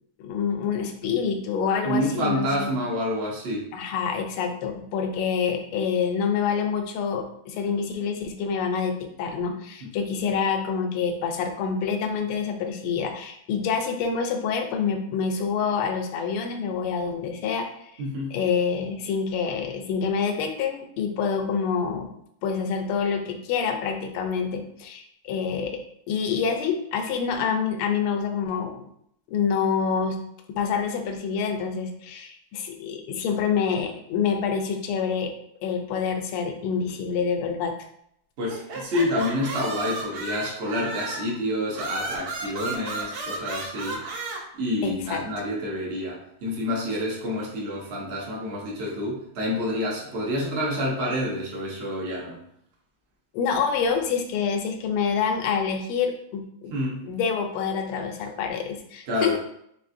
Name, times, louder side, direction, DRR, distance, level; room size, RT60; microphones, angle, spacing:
voice 1, 0.2-2.7 3.7-18.0 18.3-22.1 22.4-25.8 26.1-28.7 29.3-30.2 30.5-35.3 35.6-37.7 44.8-45.2 53.3-56.7 57.0-59.4, left 6 dB, 85° left, 5 dB, 1.5 m, -27 dB
voice 2, 1.8-3.7 9.8-9.9 18.0-18.3 38.4-44.0 44.5-52.4 56.7-57.0 59.1-59.4, left 1 dB, 65° right, -4 dB, 0.6 m, -28 dB
sound 1, 38.5-41.3 41.7-44.4, right 2 dB, 90° right, 1.7 m, -33 dB
4.2 x 3.3 x 2.5 m, 0.71 s
omnidirectional pair, 2.4 m